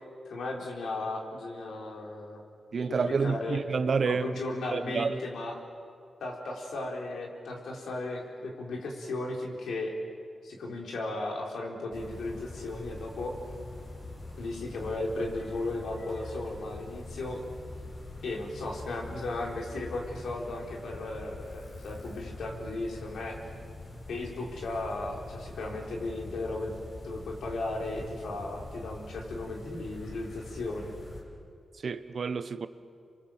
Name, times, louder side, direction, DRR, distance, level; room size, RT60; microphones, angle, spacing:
voice 1, 0.0-2.4 2.9-3.6 4.1-5.6 6.2-9.9 10.4-13.3 14.4-17.4 18.2-23.4 24.1-26.8 27.0-30.9, left 2 dB, 85° left, 4.3 m, -36 dB
voice 2, 2.7-4.3 4.7-5.2 31.8-32.7, right 5 dB, 65° right, 1.1 m, -29 dB
sound 1, 11.9-31.2, left 2 dB, 65° left, 7.0 m, -44 dB
28.0 x 23.5 x 7.5 m
cardioid pair, 55°, 0 cm